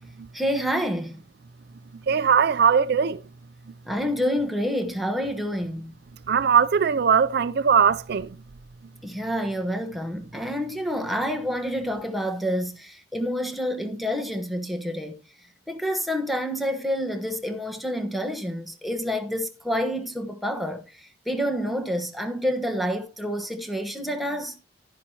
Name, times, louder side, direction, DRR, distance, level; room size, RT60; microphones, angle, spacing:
voice 1, 0.3-1.2 3.8-5.9 9.0-15.1 15.7-24.5, equal, ahead, 1.2 m, -28 dB
voice 2, 2.1-3.2 6.3-8.3, right 6 dB, 55° right, 0.4 m, -20 dB
11.5 x 10.5 x 2.9 m
head